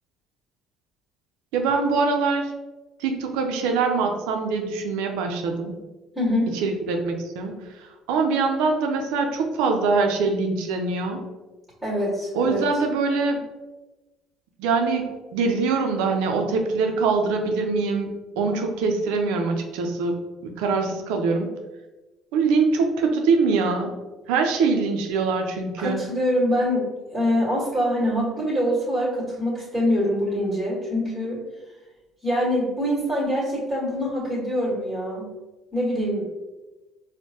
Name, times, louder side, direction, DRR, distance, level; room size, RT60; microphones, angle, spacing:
voice 1, 1.5-2.5 3.0-5.8 6.5-7.6 8.1-11.2 12.3-13.5 14.6-20.2 20.4-21.5 22.3-23.9 24.3-26.1, right 4 dB, 80° right, 4 dB, 0.5 m, -23 dB
voice 2, 6.1-6.5 11.8-12.7 25.8-31.4 32.2-35.3 35.7-36.2, equal, 10° right, -7 dB, 1.5 m, -24 dB
4.4 x 2.1 x 2.8 m, 1.1 s
supercardioid pair, 75°, 0 cm